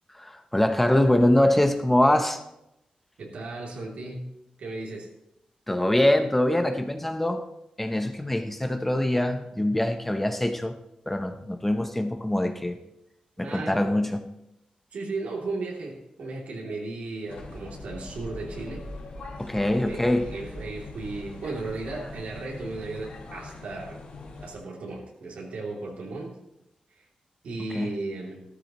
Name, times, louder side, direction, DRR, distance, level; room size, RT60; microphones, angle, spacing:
voice 1, 0.2-2.4 5.7-7.4 7.8-10.7 11.1-12.8 13.4-14.2 19.4-20.3 27.7-28.0, left 1 dB, 10° left, 6 dB, 0.8 m, -23 dB
voice 2, 3.2-4.3 4.6-5.1 13.4-14.1 14.9-18.8 19.8-24.0 24.4-26.3 26.9-27.0 27.4-28.4, right 3 dB, 85° right, -2 dB, 2.9 m, -35 dB
sound 1, 17.3-24.5, left 2 dB, 75° left, 3.2 m, -41 dB
15.0 x 13.0 x 3.1 m, 0.84 s
wide cardioid pair, 145°, 2 cm